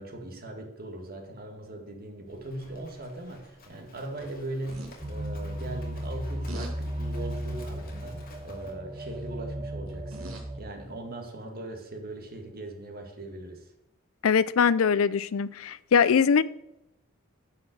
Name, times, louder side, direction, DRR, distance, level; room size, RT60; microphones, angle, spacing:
voice 1, 0.0-13.7, right 1 dB, 45° right, 2.1 m, -40 dB
Livestock farm animals working animals, 2.3-8.7, left 1 dB, 45° left, 2.4 m, -52 dB
sound 1, 4.7-4.9 6.5-6.7 7.2-7.5 8.9-9.2 9.9-10.6 11.5-11.6, right 1 dB, 75° right, 2.1 m, -43 dB
sound 2, 5.0-10.6, equal, 30° right, 1.2 m, -35 dB
voice 2, 14.2-16.4, left 6 dB, 70° left, 0.4 m, -22 dB
10.0 x 5.8 x 6.7 m
head